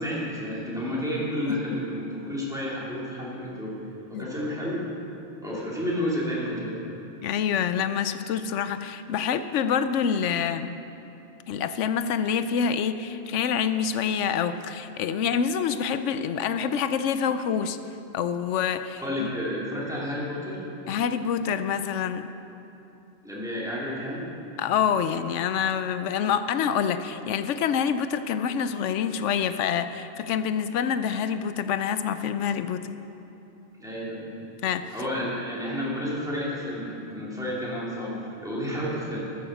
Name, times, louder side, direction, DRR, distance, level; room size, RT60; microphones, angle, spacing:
voice 1, 0.0-3.7 4.1-4.8 5.4-6.8 19.0-20.6 23.2-24.2 33.8-34.3 34.9-39.3, equal, 5° right, -7 dB, 2.6 m, -31 dB
voice 2, 1.5-1.8 4.1-4.3 7.2-10.7 11.5-17.8 18.1-19.3 20.9-22.3 24.6-33.0 34.6-34.9 35.2-35.3, left 7 dB, 80° left, 11 dB, 0.9 m, -26 dB
13.5 x 7.0 x 6.5 m, 2.9 s
omnidirectional pair, 1.2 m